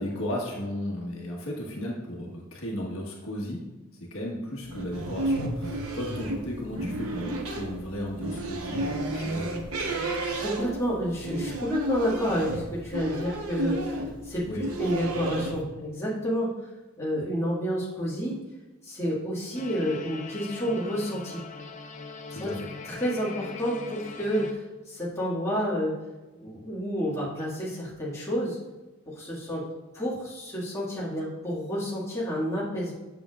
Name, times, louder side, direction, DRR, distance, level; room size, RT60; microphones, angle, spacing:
voice 1, 0.0-3.6 4.1-9.5 14.5-14.6 22.3-22.7, left 1 dB, 70° left, -2 dB, 1.4 m, -35 dB
sound 1, 4.6-15.6, right 1 dB, 75° right, 0.9 m, -32 dB
voice 2, 10.4-14.0 14.3-16.5 17.0-18.4 18.8-21.4 22.4-22.5 23.0-24.6 24.9-26.0 26.4-28.6 29.2-29.6 29.9-32.9, equal, 15° left, -8 dB, 1.9 m, -29 dB
sound 2, 19.5-24.5, left 4 dB, 35° left, 0.5 m, -41 dB
7.8 x 6.7 x 2.4 m, 1.2 s
head